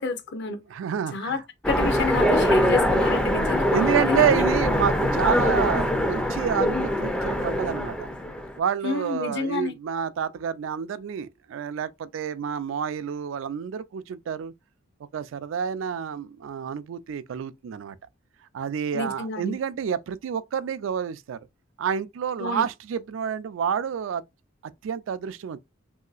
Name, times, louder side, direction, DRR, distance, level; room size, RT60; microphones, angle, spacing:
voice 1, 0.0-0.6 1.1-1.4 1.7-3.7 4.1-4.4 8.8-9.7 18.9-19.6 22.4-22.7, left 3 dB, 60° left, 0.7 m, -28 dB
voice 2, 0.7-1.4 3.7-8.0 8.6-14.5 15.1-18.0 18.5-21.4 21.8-24.2 24.8-25.6, right 8 dB, 70° right, 0.3 m, -28 dB
Train, 1.6-8.6, equal, 5° left, 0.4 m, -23 dB
3.0 x 2.7 x 2.4 m
head